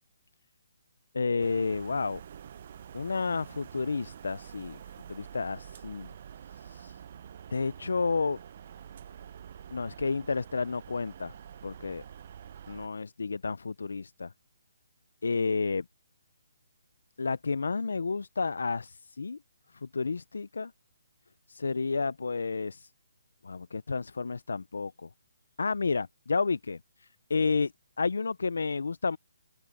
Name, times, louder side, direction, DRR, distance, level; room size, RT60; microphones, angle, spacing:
voice 1, 1.1-2.2 2.9-4.8 5.1-6.1 6.6-6.9 7.5-8.4 9.7-11.3 11.6-12.0 12.7-14.3 15.2-15.8 17.2-19.4 19.8-20.7 21.5-22.9 23.4-25.1 25.6-27.7 28.0-29.2, left 4 dB, 80° left, 0.4 m, -31 dB
sound 1, 1.4-12.9, right 9 dB, 35° right, 0.4 m, -47 dB
open air
hypercardioid pair, 175°, 0 cm